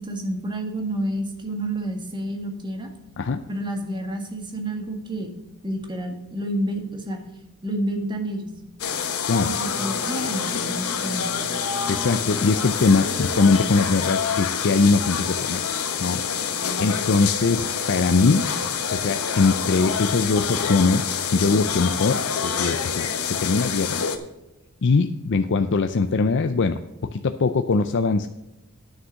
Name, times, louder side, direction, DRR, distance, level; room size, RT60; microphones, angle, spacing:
voice 1, 0.0-2.9 3.5-5.3 5.6-7.2 7.6-8.5 9.4-11.4 16.6-17.2, right 1 dB, 20° right, 3 dB, 1.8 m, -29 dB
sound 1, 8.8-24.2, left 7 dB, 80° left, 1.1 m, -27 dB
sound 2, 9.3-14.3, left 1 dB, 30° left, 1.6 m, -39 dB
voice 2, 11.9-15.6 16.0-18.5 18.9-24.0 24.8-28.3, left 4 dB, 55° left, 8 dB, 0.5 m, -22 dB
9.8 x 6.5 x 6.3 m, 0.94 s
head